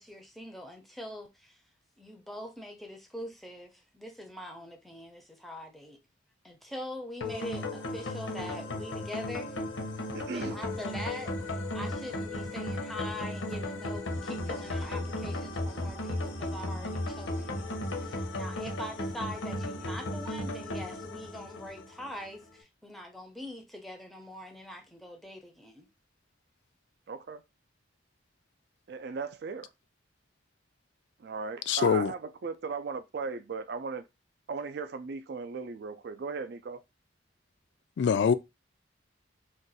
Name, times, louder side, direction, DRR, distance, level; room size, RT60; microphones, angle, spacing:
voice 1, 0.0-1.6 2.0-6.0 6.4-9.6 10.2-11.3 11.7-25.9, left 1 dB, ahead, 0.5 m, -43 dB
sound 1, 7.2-22.3, left 1 dB, 90° left, 0.8 m, -35 dB
voice 2, 10.1-10.6 27.1-27.4 28.9-29.7 31.2-34.0 34.5-36.8, right 4 dB, 55° right, 0.4 m, -37 dB
voice 3, 31.7-32.1 38.0-38.3, left 6 dB, 65° left, 0.3 m, -24 dB
2.5 x 2.2 x 4.0 m
head